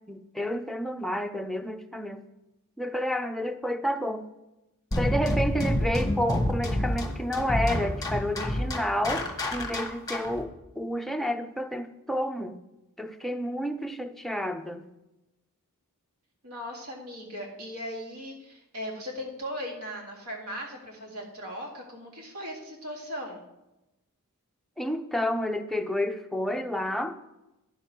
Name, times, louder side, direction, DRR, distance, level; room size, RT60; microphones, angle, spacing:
voice 1, 0.1-2.2 2.8-4.2 5.0-9.3 9.5-12.6 13.0-14.8 24.8-27.2, equal, ahead, 5 dB, 0.5 m, -30 dB
sound 1, 4.9-10.4, left 1 dB, 15° left, 1.2 m, -28 dB
voice 2, 16.4-23.5, equal, 75° right, -1 dB, 2.1 m, -38 dB
10.0 x 6.2 x 4.5 m, 0.97 s
head